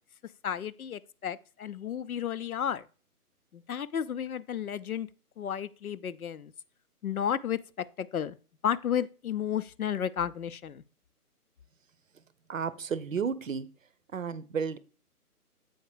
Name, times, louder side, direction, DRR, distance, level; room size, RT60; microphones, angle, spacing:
voice 1, 0.4-2.8 3.5-5.1 5.4-6.5 7.0-7.6 8.0-8.4 8.6-10.8, left 9 dB, 65° left, 0.6 m, -32 dB
voice 2, 12.5-13.7 14.1-14.8, right 6 dB, 55° right, 0.7 m, -32 dB
8.0 x 4.4 x 4.8 m
hypercardioid pair, 165°, 46 cm